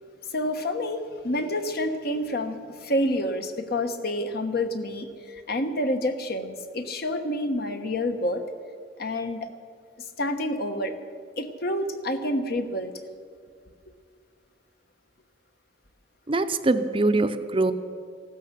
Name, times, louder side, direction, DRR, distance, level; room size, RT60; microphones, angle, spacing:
voice 1, 0.3-8.4 9.0-9.5 10.2-10.9 11.4-12.9, left 1 dB, 60° left, 7 dB, 1.1 m, -28 dB
voice 2, 16.3-17.7, right 2 dB, 30° right, 9 dB, 0.6 m, -23 dB
15.5 x 12.5 x 6.8 m, 2.1 s
head